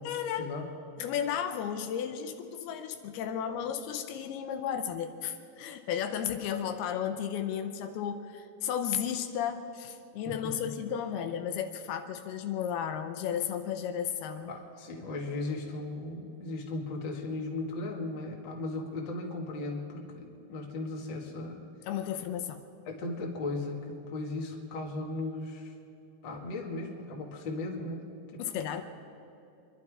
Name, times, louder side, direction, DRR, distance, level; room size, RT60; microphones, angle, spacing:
voice 1, 0.0-0.5 1.0-14.5 21.9-22.6 28.4-28.8, left 9 dB, 80° left, 7 dB, 2.7 m, -34 dB
voice 2, 14.4-21.6 22.9-25.7 26.2-28.0 28.3-28.6, left 2 dB, 40° left, -1 dB, 1.9 m, -37 dB
25.5 x 11.5 x 4.8 m, 2.8 s
omnidirectional pair, 4.6 m